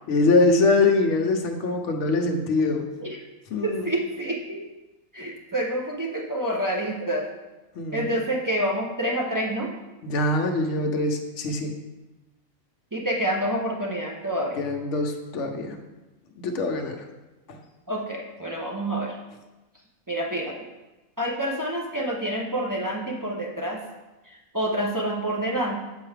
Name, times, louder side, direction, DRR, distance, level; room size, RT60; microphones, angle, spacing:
voice 1, 0.1-2.9 3.5-3.8 7.8-8.0 10.0-11.7 14.6-15.8 16.4-17.0 17.5-17.6, left 3 dB, 65° left, 4 dB, 1.0 m, -23 dB
voice 2, 3.6-4.6 5.1-7.3 7.9-9.7 12.9-14.7 17.9-19.2 20.1-20.6 21.2-23.8 24.2-25.7, right 1 dB, 35° right, -2 dB, 0.3 m, -28 dB
7.5 x 4.5 x 3.3 m, 1.1 s
omnidirectional pair, 1.4 m